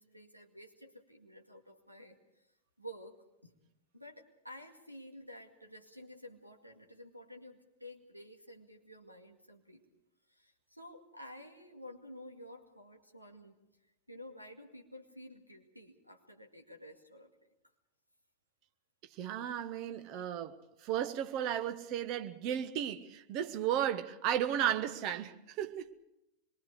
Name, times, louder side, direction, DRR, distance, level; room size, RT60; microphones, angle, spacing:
voice 1, 0.0-2.5 2.8-3.6 3.9-9.8 10.3-13.5 14.1-17.3, equal, 90° right, 2.2 m, -52 dB
voice 2, 19.2-25.9, right 10 dB, 40° right, 1.2 m, -34 dB
26.0 x 22.5 x 4.9 m
figure-of-eight pair, 90°, 0 cm